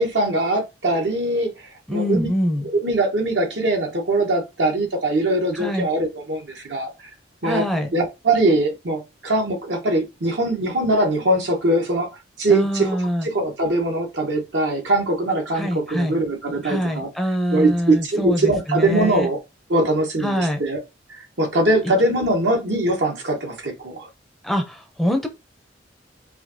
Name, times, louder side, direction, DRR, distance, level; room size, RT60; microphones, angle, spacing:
voice 1, 0.0-2.3 2.6-6.9 7.4-7.6 7.9-12.1 12.4-12.9 13.2-17.1 17.5-19.4 19.7-20.8 21.1-24.1, right 2 dB, 70° right, 1.3 m, -22 dB
voice 2, 1.9-2.7 5.5-5.9 7.4-7.9 12.5-13.3 15.5-16.2 16.6-19.3 20.2-20.6 24.4-25.3, equal, ahead, 0.6 m, -24 dB
4.9 x 2.7 x 2.7 m
head